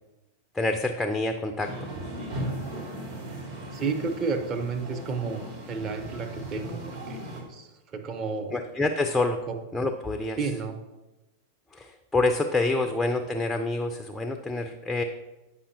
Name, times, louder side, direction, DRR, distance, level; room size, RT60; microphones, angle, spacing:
voice 1, 0.5-1.7 8.5-9.4 9.7-10.4 11.7-15.0, left 2 dB, 5° left, 6 dB, 0.4 m, -27 dB
sound 1, 1.6-7.4, right 1 dB, 60° right, 2.1 m, -37 dB
voice 2, 3.7-8.5 9.5-9.6 10.4-10.8, right 4 dB, 30° right, 4 dB, 0.8 m, -32 dB
8.3 x 5.3 x 2.8 m, 1.0 s
figure-of-eight pair, 90°, 0 cm